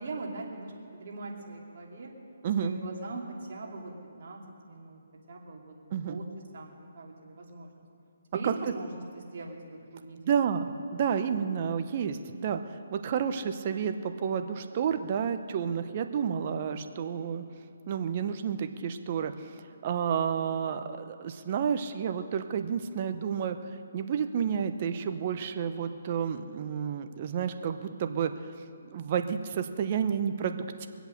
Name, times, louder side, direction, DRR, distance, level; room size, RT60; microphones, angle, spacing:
voice 1, 0.0-2.1 2.6-3.9 4.2-4.4 4.7-5.0 5.3-5.8 6.1-6.2 6.5-7.7 8.3-8.9 9.1-10.3, right 3 dB, 55° right, -1 dB, 2.8 m, -40 dB
voice 2, 2.4-2.7 5.9-6.2 8.4-8.5 10.2-12.6 12.9-17.4 17.9-19.5 19.8-23.6 23.9-28.3 28.8-30.9, right 7 dB, 40° right, 8 dB, 0.9 m, -30 dB
23.5 x 8.1 x 6.5 m, 2.6 s
hypercardioid pair, 155°, 0 cm